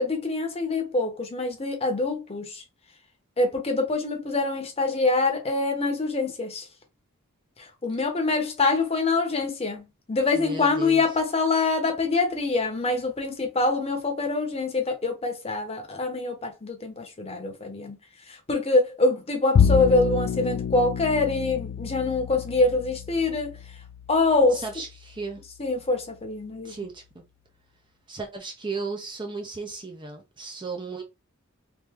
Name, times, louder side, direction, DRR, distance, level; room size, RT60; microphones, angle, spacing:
voice 1, 0.0-2.6 3.4-6.7 7.6-18.0 18.3-23.5 24.1-24.6 25.6-26.8, left 3 dB, 30° left, 0.9 m, -25 dB
voice 2, 10.3-11.0 24.5-25.4 26.6-27.2 28.1-31.0, right 3 dB, 20° right, 0.6 m, -35 dB
Bowed string instrument, 19.5-26.0, left 7 dB, 60° left, 0.3 m, -28 dB
3.1 x 2.7 x 3.5 m
head